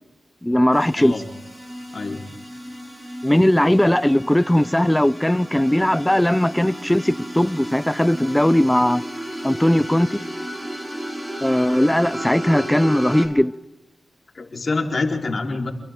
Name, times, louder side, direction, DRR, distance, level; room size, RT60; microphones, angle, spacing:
voice 1, 0.4-1.1 3.2-9.0 9.4-10.2 11.4-13.5, left 1 dB, 10° left, 0.7 m, -18 dB
sound 1, 0.7-13.3, right 1 dB, 20° right, 6.0 m, -33 dB
voice 2, 1.9-2.2 14.3-15.7, left 3 dB, 55° left, 4.4 m, -26 dB
30.0 x 22.5 x 3.9 m
cardioid pair, 55°, 0 cm